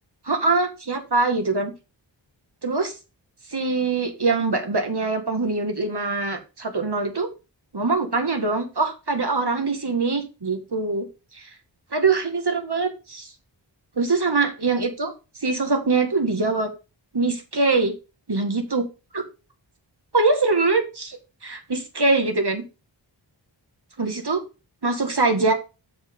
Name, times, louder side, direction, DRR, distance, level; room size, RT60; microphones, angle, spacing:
voice 1, 0.3-1.7 2.6-2.9 3.5-7.3 7.7-11.1 11.3-11.4 11.9-13.3 14.0-15.1 15.4-16.7 17.1-17.9 18.3-18.9 19.1-19.2 20.1-21.2 21.4-22.6 24.0-24.4 24.8-25.5, right 3 dB, 60° right, 6 dB, 1.8 m, -23 dB
7.1 x 5.5 x 5.3 m, 0.30 s
wide cardioid pair, 50°, 46 cm